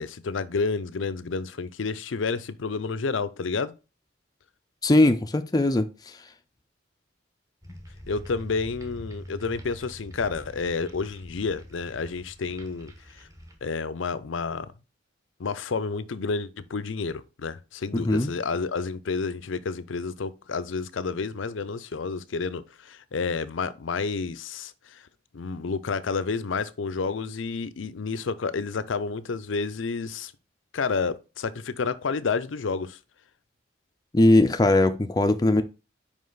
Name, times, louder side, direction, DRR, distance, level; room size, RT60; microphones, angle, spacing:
voice 1, 0.0-3.7 8.1-13.3 13.6-14.7 15.4-25.0 25.3-30.3 30.7-33.0, left 4 dB, 85° left, 0.6 m, -30 dB
voice 2, 4.8-6.2 17.9-18.3 34.1-35.6, left 2 dB, 20° left, 0.5 m, -20 dB
sound 1, 7.6-14.1, equal, 15° right, 1.2 m, -45 dB
5.3 x 5.0 x 3.9 m
head